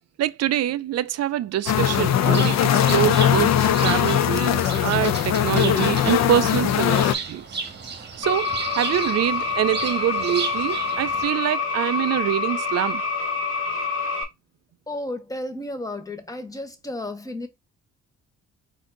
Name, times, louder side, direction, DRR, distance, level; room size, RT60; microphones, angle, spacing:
voice 1, 0.2-7.6 8.2-13.0, right 12 dB, 60° right, 0.5 m, -25 dB
sound 1, 1.7-7.1, left 10 dB, 60° left, 0.6 m, -20 dB
Bird, 2.2-11.2, right 4 dB, 35° right, 1.3 m, -34 dB
sound 2, 8.2-14.2, left 4 dB, 40° left, 1.4 m, -27 dB
voice 2, 14.9-17.5, left 1 dB, 10° left, 1.0 m, -32 dB
4.3 x 2.6 x 3.8 m
cardioid pair, 90°, 30 cm